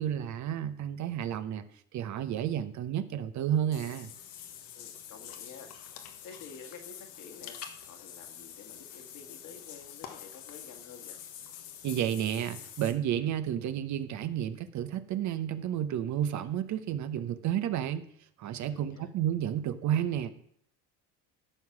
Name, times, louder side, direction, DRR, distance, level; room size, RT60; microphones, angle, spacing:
voice 1, 0.0-1.6 1.9-4.1 11.8-18.0 18.4-20.3, right 10 dB, 55° right, 11 dB, 0.9 m, -31 dB
Water / Bathtub (filling or washing), 3.7-12.9, left 9 dB, 80° left, 1.3 m, -46 dB
voice 2, 4.7-5.7 6.2-7.6 7.8-11.2 18.7-19.1, left 5 dB, 55° left, 5 dB, 1.9 m, -50 dB
13.5 x 4.7 x 6.0 m, 0.66 s
supercardioid pair, 100°, 35 cm